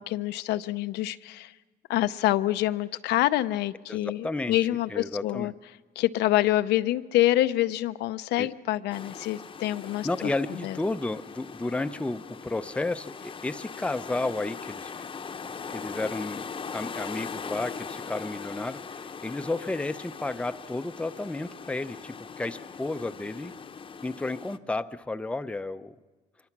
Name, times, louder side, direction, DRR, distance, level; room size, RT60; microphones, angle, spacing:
voice 1, 0.0-1.5 1.9-5.5 6.0-10.3 10.6-10.8, left 15 dB, 80° left, 11 dB, 0.7 m, -26 dB
voice 2, 3.9-4.6 4.9-5.5 8.4-8.5 10.0-15.1 15.7-23.5 24.0-26.0, left 2 dB, 5° left, 10 dB, 0.6 m, -32 dB
sound 1, 8.9-24.6, left 6 dB, 30° left, 0.9 m, -40 dB
25.0 x 23.5 x 6.0 m, 1.3 s
cardioid pair, 110°, 17 cm